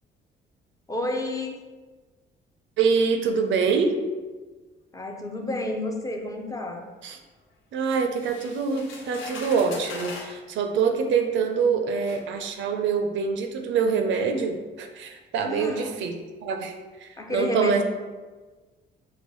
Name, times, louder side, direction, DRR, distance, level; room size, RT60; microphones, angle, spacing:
voice 1, 0.9-1.6 4.9-6.9 15.4-16.0 17.2-17.8, left 1 dB, 15° left, 2 dB, 0.4 m, -30 dB
voice 2, 2.8-4.0 7.0-7.2 7.7-16.1 16.4-16.8 17.0-17.8, right 5 dB, 70° right, 5 dB, 0.4 m, -25 dB
sound 1, 8.1-10.4 11.3-11.4 12.0-12.2, left 3 dB, 75° left, 0.6 m, -40 dB
3.8 x 2.1 x 3.0 m, 1.3 s
cardioid pair, 90°, 20 cm